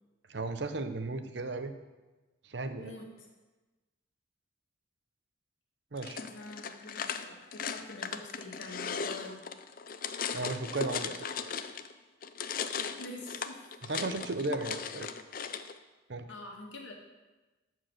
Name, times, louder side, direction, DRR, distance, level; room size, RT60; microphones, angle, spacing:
voice 1, 0.3-1.7 2.4-3.0 5.9-6.2 10.3-11.3 13.9-15.1 16.1-16.3, right 3 dB, 65° right, 9 dB, 0.8 m, -35 dB
voice 2, 2.8-3.3 6.2-9.4 13.0-13.7 16.3-16.9, left 2 dB, 80° left, 0 dB, 2.0 m, -46 dB
sound 1, 6.0-11.9 12.2-15.7, left 6 dB, 45° left, 0.5 m, -37 dB
13.5 x 4.8 x 6.5 m, 1.2 s
head